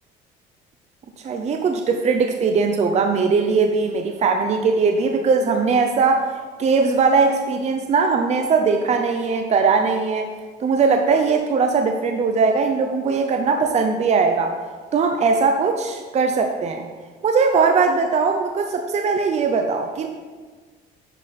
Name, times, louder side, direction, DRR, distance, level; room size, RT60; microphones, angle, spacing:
voice 1, 1.2-6.3 6.6-10.3 10.6-14.6 14.9-16.9 17.2-20.1, right 4 dB, 40° right, 4 dB, 0.7 m, -20 dB
10.0 x 6.0 x 4.2 m, 1.4 s
cardioid pair, 110°, 17 cm